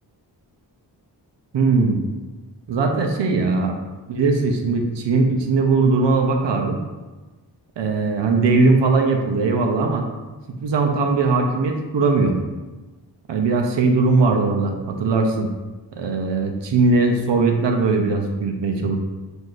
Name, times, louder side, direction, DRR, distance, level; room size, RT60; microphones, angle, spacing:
voice 1, 1.5-2.0 2.7-3.7 4.1-6.8 7.8-10.1 10.6-12.3 13.3-15.5 16.0-19.0, right 3 dB, 85° right, 3 dB, 0.6 m, -19 dB
7.6 x 2.6 x 2.5 m, 1.2 s
wide cardioid pair, 115°, 42 cm